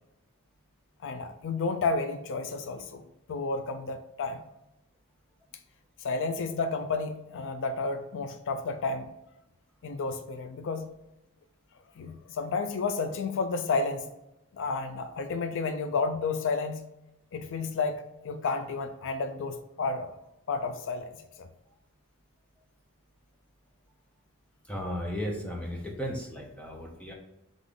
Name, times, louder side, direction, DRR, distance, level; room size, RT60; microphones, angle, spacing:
voice 1, 1.0-3.0 3.3-4.4 6.0-9.1 9.8-10.9 12.0-14.1 14.5-16.8 17.3-20.1 20.5-21.5, left 4 dB, 60° left, 7 dB, 0.4 m, -31 dB
voice 2, 24.7-27.1, equal, 5° left, -1 dB, 0.7 m, -35 dB
3.6 x 3.6 x 3.7 m, 0.89 s
head